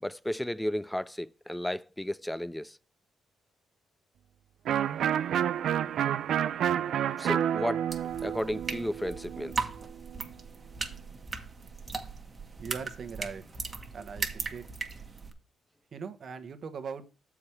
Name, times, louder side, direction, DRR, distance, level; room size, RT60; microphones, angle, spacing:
voice 1, 0.0-2.8 7.2-7.9 8.2-9.7, left 1 dB, 5° left, 0.4 m, -33 dB
Electric guitar, 4.7-10.3, right 10 dB, 70° right, 0.4 m, -30 dB
sound 1, 7.9-15.3, right 4 dB, 30° right, 1.3 m, -38 dB
voice 2, 12.6-13.4 13.9-14.6 15.9-17.0, right 6 dB, 50° right, 1.1 m, -40 dB
7.2 x 4.8 x 5.7 m
cardioid pair, 90°, 0 cm